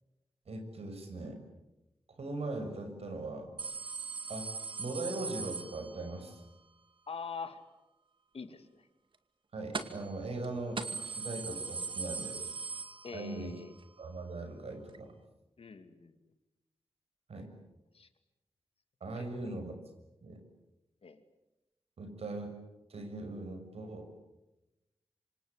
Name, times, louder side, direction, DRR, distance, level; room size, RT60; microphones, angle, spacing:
voice 1, 0.5-1.4 2.1-3.5 4.3-4.5 4.8-6.4 9.5-12.5 13.1-13.6 14.0-15.1 17.3-17.5 19.0-19.8 20.2-20.4 22.0-22.5 22.9-24.3, right 2 dB, 80° right, 6 dB, 6.5 m, -40 dB
sound 1, 3.6-6.3 9.7-10.1 10.4-10.5 10.8-13.5 13.8-13.9 14.9-15.0, right 4 dB, 55° right, 2.2 m, -40 dB
voice 2, 7.1-7.6 8.3-8.9 13.0-13.7 15.6-16.1 17.9-18.1 19.2-19.5 21.0-21.2, left 5 dB, 70° left, 8 dB, 2.5 m, -44 dB
27.0 x 26.5 x 8.3 m, 0.98 s
wide cardioid pair, 90°, 10 cm